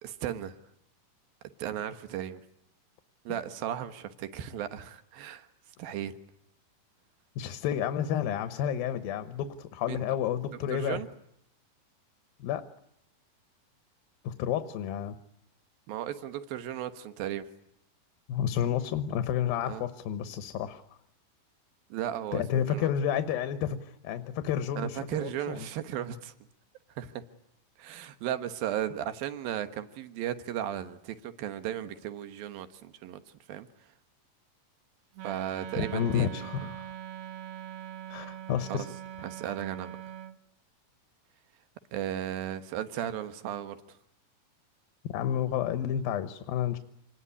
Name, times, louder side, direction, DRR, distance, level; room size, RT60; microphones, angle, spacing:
voice 1, 0.0-0.6 1.6-2.4 3.2-5.5 5.8-6.1 9.9-10.1 10.7-11.1 15.9-17.5 19.6-19.8 21.9-22.9 24.8-26.3 26.9-27.2 27.8-33.2 33.5-33.7 35.2-36.5 38.7-38.8 39.2-40.0 41.9-44.0, right 11 dB, 90° right, 10 dB, 3.1 m, -35 dB
voice 2, 7.4-11.0 12.4-12.6 14.2-15.2 18.3-20.8 22.3-25.7 35.9-36.9 38.1-38.9 45.1-46.8, left 9 dB, 90° left, 10 dB, 3.0 m, -30 dB
Wind instrument woodwind instrument, 35.1-40.4, right 11 dB, 60° right, 1.7 m, -42 dB
27.0 x 20.0 x 9.9 m, 0.79 s
omnidirectional pair, 4.0 m